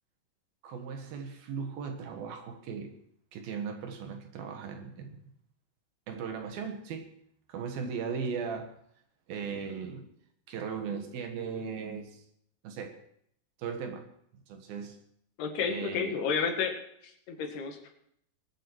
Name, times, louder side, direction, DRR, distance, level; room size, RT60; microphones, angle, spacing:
voice 1, 0.6-3.0 3.3-5.2 6.1-7.1 7.5-8.8 9.3-10.1 10.5-12.2 12.6-13.0 13.6-14.1 14.5-15.0 15.7-16.2, right 6 dB, 70° right, 5 dB, 3.2 m, -37 dB
voice 2, 15.4-16.8 17.3-18.0, left 6 dB, 80° left, 4 dB, 3.8 m, -31 dB
23.5 x 8.7 x 4.5 m, 0.70 s
omnidirectional pair, 4.6 m